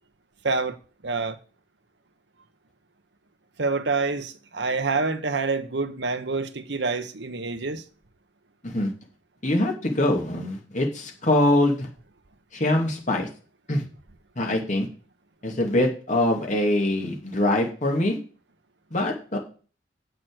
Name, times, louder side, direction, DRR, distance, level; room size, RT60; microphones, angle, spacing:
voice 1, 0.4-0.8 1.0-1.4 3.6-7.8, right 3 dB, 65° right, 1.0 m, -27 dB
voice 2, 9.4-11.9 12.5-13.3 13.7-13.8 14.4-14.9 15.4-18.2 18.9-19.4, left 1 dB, 40° left, 2.8 m, -23 dB
7.9 x 6.7 x 7.9 m
head